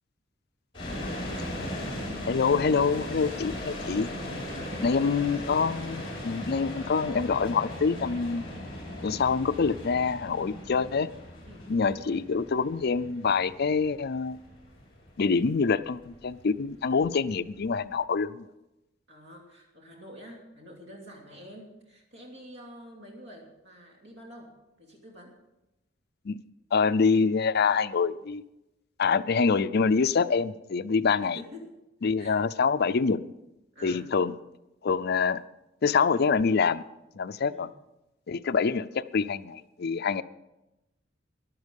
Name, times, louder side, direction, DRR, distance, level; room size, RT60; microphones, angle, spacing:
sound 1, 0.7-17.7, left 1 dB, 25° left, 4.3 m, -38 dB
voice 1, 2.3-4.1 4.8-8.5 9.0-11.1 11.7-14.4 15.2-18.5 26.2-26.4 26.7-28.4 29.0-31.4 32.0-33.2 33.8-34.3 34.8-35.4 35.8-36.8 37.1-37.7 38.3-40.2, left 5 dB, 55° left, 13 dB, 0.5 m, -26 dB
voice 2, 4.5-4.9 11.4-11.7 19.1-24.5 24.8-25.4 31.2-31.7 32.2-32.4 33.7-34.1 37.4-37.7, equal, 60° right, -1 dB, 2.8 m, -47 dB
14.5 x 11.5 x 5.3 m, 0.94 s
head